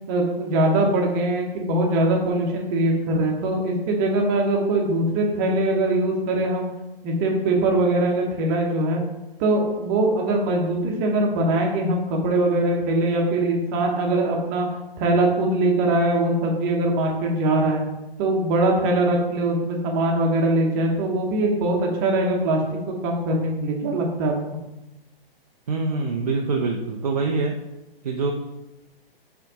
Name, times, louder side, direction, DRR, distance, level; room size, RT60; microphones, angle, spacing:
voice 1, 0.1-6.7 7.0-9.0 9.4-14.7 15.0-17.8 18.2-22.6 22.9-24.3, right 2 dB, 20° right, 0 dB, 1.0 m, -22 dB
voice 2, 25.7-27.6 28.0-28.3, right 4 dB, 40° right, 2 dB, 0.6 m, -24 dB
6.5 x 3.4 x 4.8 m, 1.0 s
figure-of-eight pair, 125°, 30 cm